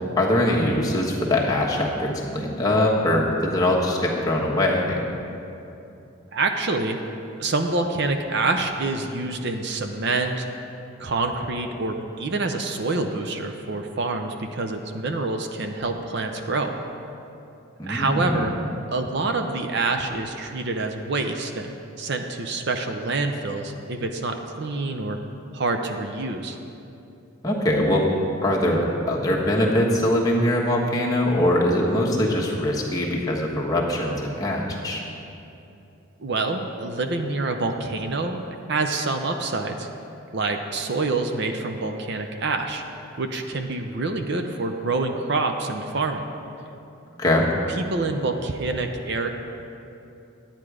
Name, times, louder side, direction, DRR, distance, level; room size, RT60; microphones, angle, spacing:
voice 1, 0.2-5.0 17.8-18.5 27.4-28.1 28.4-35.0 47.2-47.5, left 1 dB, 15° left, -3 dB, 1.3 m, -22 dB
voice 2, 6.3-7.0 7.4-10.5 11.0-16.7 17.8-18.5 18.9-25.2 25.5-26.6 36.2-38.4 38.7-39.9 40.3-42.8 43.2-46.3 47.8-49.3, right 3 dB, 55° right, 5 dB, 0.6 m, -26 dB
11.0 x 9.0 x 4.9 m, 2.8 s
head